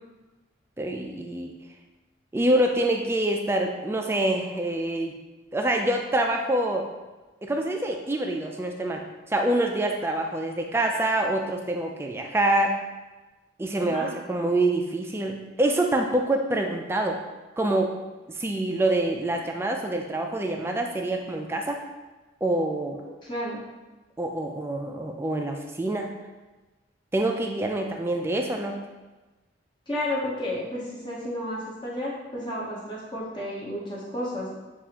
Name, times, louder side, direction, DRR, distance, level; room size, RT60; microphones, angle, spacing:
voice 1, 0.8-1.5 2.3-5.1 5.5-6.9 7.4-9.0 9.3-12.8 13.6-17.2 17.6-18.0 18.3-21.8 22.4-23.0 24.2-26.1 27.1-28.8, right 1 dB, 15° right, 2 dB, 0.3 m, -26 dB
voice 2, 23.2-23.6 29.9-34.5, left 1 dB, 25° left, -6 dB, 0.8 m, -32 dB
6.7 x 2.5 x 2.8 m, 1.2 s
head